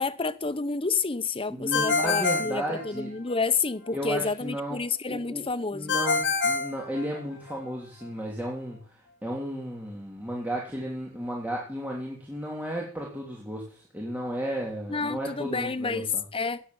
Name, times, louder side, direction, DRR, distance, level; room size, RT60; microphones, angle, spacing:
voice 1, 0.0-5.9 14.9-16.6, left 4 dB, 25° left, 0.9 m, -29 dB
voice 2, 1.5-3.2 3.9-4.8 5.1-16.2, equal, 10° right, 3.1 m, -34 dB
Ringtone, 1.7-3.4 5.9-7.6, left 4 dB, 55° left, 2.5 m, -27 dB
16.0 x 10.0 x 7.9 m
head